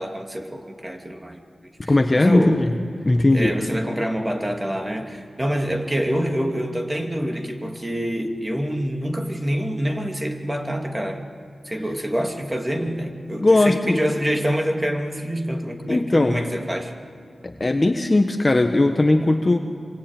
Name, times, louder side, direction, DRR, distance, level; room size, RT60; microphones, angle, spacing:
voice 1, 0.0-2.7 3.3-11.2 11.6-16.9, equal, 20° right, 3 dB, 2.5 m, -26 dB
voice 2, 1.9-2.7 3.0-3.6 13.4-14.0 15.9-16.4 17.4-19.6, left 2 dB, 30° left, 5 dB, 1.4 m, -18 dB
26.0 x 24.5 x 9.1 m, 2.3 s
wide cardioid pair, 70°, 0 cm